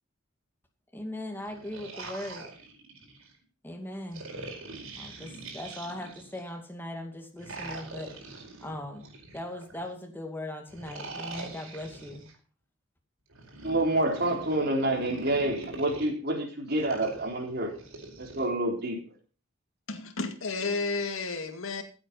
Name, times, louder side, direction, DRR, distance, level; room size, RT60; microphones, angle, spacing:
voice 1, 0.9-2.5 3.6-4.2 5.0-8.1 8.6-9.1 9.3-12.3, left 1 dB, 10° left, 2.3 m, -39 dB
sound 1, 1.4-3.3 4.1-6.5 7.4-9.9 10.7-12.3 13.3-16.1 16.8-18.5, right 2 dB, 80° right, 4.9 m, -43 dB
voice 2, 13.6-17.7 18.2-19.0, right 1 dB, 50° right, 4.2 m, -28 dB
voice 3, 19.9-21.8, left 3 dB, 80° left, 2.2 m, -32 dB
15.5 x 8.6 x 5.7 m
head